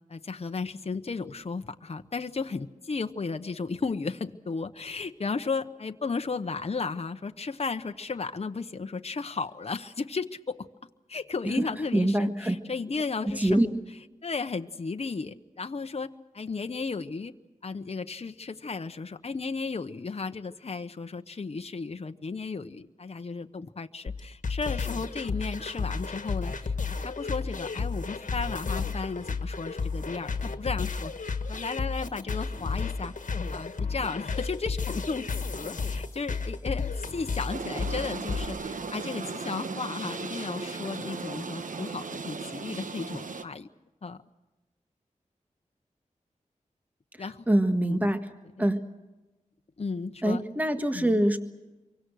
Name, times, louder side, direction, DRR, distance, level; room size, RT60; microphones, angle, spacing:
voice 1, 0.1-10.7 11.1-13.7 14.2-17.3 17.6-26.7 27.0-33.1 33.5-43.7 44.0-44.2 47.2-47.5 47.8-48.1 48.6-48.7 49.8-50.4 50.9-51.2, left 4 dB, 50° left, 7 dB, 0.9 m, -34 dB
voice 2, 11.9-12.6 13.2-13.7 47.2-48.3 48.6-48.9 50.2-51.4, right 1 dB, 10° right, 7 dB, 1.6 m, -25 dB
sound 1, 24.1-38.5, left 4 dB, 70° left, 1.6 m, -32 dB
sound 2, 37.5-43.4, right 4 dB, 80° right, 1.2 m, -36 dB
27.5 x 24.0 x 6.4 m, 1.1 s
wide cardioid pair, 80°, 13 cm